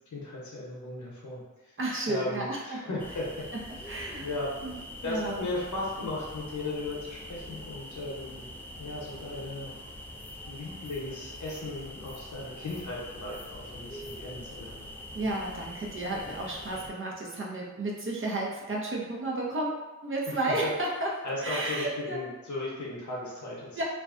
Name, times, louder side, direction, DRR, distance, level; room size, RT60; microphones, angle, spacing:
voice 1, 0.1-1.4 2.1-3.5 4.2-4.5 5.0-8.5 8.8-9.7 10.5-14.9 20.6-20.7 21.2-23.8, left 2 dB, 70° left, -5 dB, 0.8 m, -36 dB
voice 2, 1.8-2.8 3.9-4.3 4.6-4.8 5.0-5.3 15.1-21.1 21.4-22.2 23.8-23.9, right 2 dB, 40° right, -3 dB, 0.6 m, -32 dB
sound 1, 3.0-16.9, left 1 dB, 5° left, 0.4 m, -44 dB
2.4 x 2.1 x 2.4 m, 1.1 s
cardioid pair, 45°, 31 cm